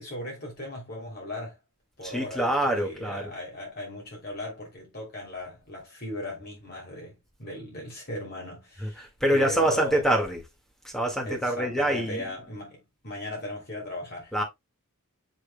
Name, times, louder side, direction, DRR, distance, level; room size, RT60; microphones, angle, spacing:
voice 1, 0.0-1.6 2.0-10.1 11.2-14.4, left 1 dB, 45° left, 3.1 m, -38 dB
voice 2, 2.0-3.3 8.8-10.4 10.8-12.3 14.3-14.4, right 1 dB, ahead, 1.9 m, -26 dB
7.4 x 6.2 x 2.3 m
head